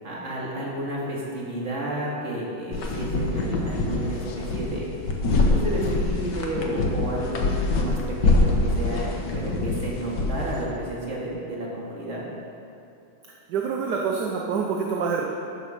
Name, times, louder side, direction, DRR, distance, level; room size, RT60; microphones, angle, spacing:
voice 1, 0.0-4.9 5.5-7.5 7.8-12.2, right 1 dB, 35° right, -4 dB, 2.4 m, -31 dB
sound 1, 2.7-10.6, left 2 dB, 60° left, 1.7 m, -24 dB
voice 2, 13.5-15.3, right 5 dB, 60° right, 0 dB, 1.3 m, -26 dB
11.0 x 8.3 x 6.4 m, 2.7 s
omnidirectional pair, 2.3 m